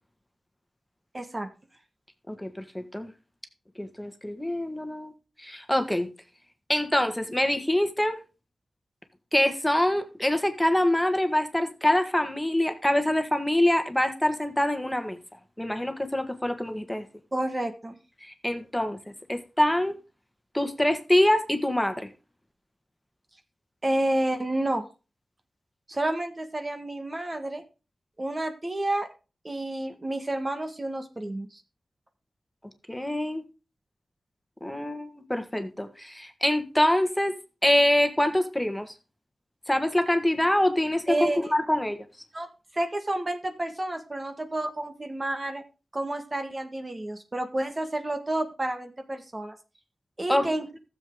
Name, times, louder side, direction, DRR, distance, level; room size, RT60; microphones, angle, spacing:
voice 1, 1.1-1.5 17.3-18.0 23.8-24.8 25.9-27.6 28.2-29.1 29.4-31.6 41.1-41.5 42.3-42.5 42.7-45.6 45.9-49.5 50.2-50.7, right 1 dB, 35° right, 7 dB, 1.7 m, -30 dB
voice 2, 2.3-3.1 3.8-5.1 5.4-6.1 6.7-8.2 9.3-15.2 15.6-17.0 18.2-19.0 19.3-20.0 20.5-22.1 32.9-33.4 34.6-37.3 37.6-38.9 39.7-42.0 50.3-50.5, left 1 dB, 10° left, 7 dB, 1.7 m, -25 dB
13.0 x 7.6 x 3.8 m, 0.32 s
cardioid pair, 40°, 0 cm